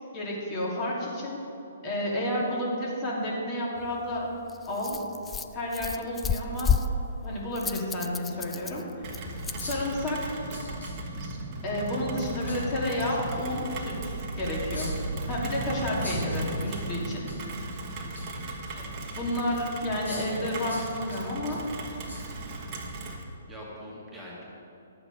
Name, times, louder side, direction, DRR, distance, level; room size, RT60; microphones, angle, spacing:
voice 1, 0.1-1.4 1.8-4.3 4.7-5.0 5.5-6.8 7.2-8.8 9.6-10.3 11.6-14.9 15.3-17.2 19.1-21.6, left 1 dB, 30° left, -4 dB, 2.5 m, -31 dB
Rattle, 3.8-9.8, left 6 dB, 10° left, 0.4 m, -32 dB
Rain, 9.0-23.2, right 2 dB, 30° right, 1.4 m, -36 dB
sound 1, 9.6-10.0 10.5-11.3 12.5-12.7 14.7-15.2 16.0-16.8 17.1-17.4 17.7-18.4 19.1-19.2 20.0-20.4 20.7-21.6 22.1-22.2 22.6-22.7, left 2 dB, 85° left, 2.8 m, -42 dB
voice 2, 18.7-19.2 23.2-24.4, equal, 5° right, -7 dB, 2.0 m, -44 dB
11.0 x 7.8 x 5.1 m, 2.9 s
figure-of-eight pair, 130°, 0 cm